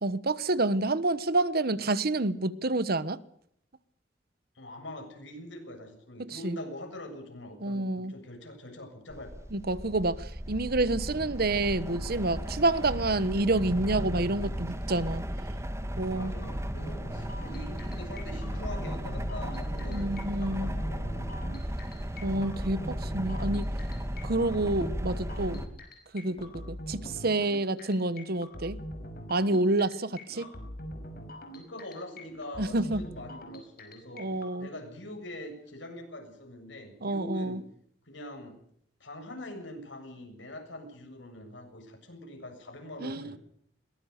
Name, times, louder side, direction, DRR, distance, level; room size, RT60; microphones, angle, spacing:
voice 1, 0.0-3.2 6.3-6.6 7.6-8.1 9.5-15.2 16.0-16.3 19.9-20.7 22.2-23.7 24.2-25.6 26.1-28.8 29.3-30.5 32.6-33.0 34.1-34.7 37.0-37.6 43.0-43.4, right 2 dB, 55° right, 1.2 m, -28 dB
voice 2, 4.6-9.5 16.1-21.2 30.3-30.5 31.5-34.2 34.6-37.6 38.1-38.6 39.0-43.4, left 1 dB, 85° left, 7.3 m, -43 dB
sound 1, 9.1-25.7, equal, 15° right, 2.2 m, -35 dB
sound 2, 16.4-34.5, equal, 55° left, 5.4 m, -43 dB
sound 3, 22.6-23.5 23.9-24.5 24.8-26.0 26.4-27.5, equal, 30° left, 5.1 m, -49 dB
22.0 x 19.0 x 6.7 m
head